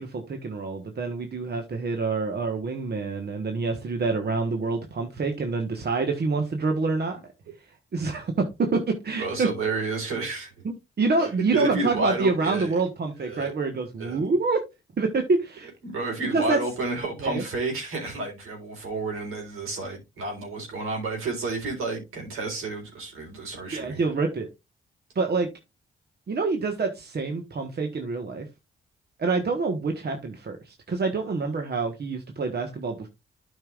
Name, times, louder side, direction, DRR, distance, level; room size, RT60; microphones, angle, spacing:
voice 1, 0.0-7.2 7.9-9.5 11.0-14.6 15.0-15.7 16.3-16.6 17.2-17.4 23.7-24.5 25.1-25.5 26.3-28.5 29.2-33.1, right 3 dB, 50° right, 1.4 m, -26 dB
voice 2, 9.2-10.5 11.5-12.7 13.2-13.5 14.0-14.2 15.8-24.1, right 3 dB, 80° right, 3.9 m, -30 dB
12.0 x 5.5 x 2.5 m
supercardioid pair, 60°, 21 cm